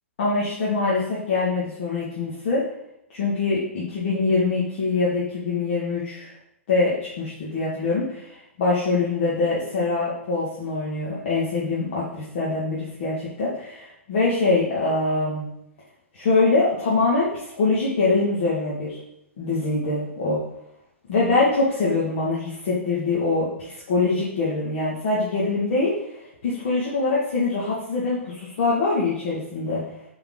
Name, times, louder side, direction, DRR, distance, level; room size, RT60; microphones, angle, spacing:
voice 1, 0.2-2.7 3.1-6.3 6.7-15.5 16.1-19.0 19.4-20.4 21.1-29.8, left 3 dB, 55° left, -6 dB, 2.0 m, -24 dB
8.8 x 4.5 x 3.9 m, 0.80 s
figure-of-eight pair, 115°, 8 cm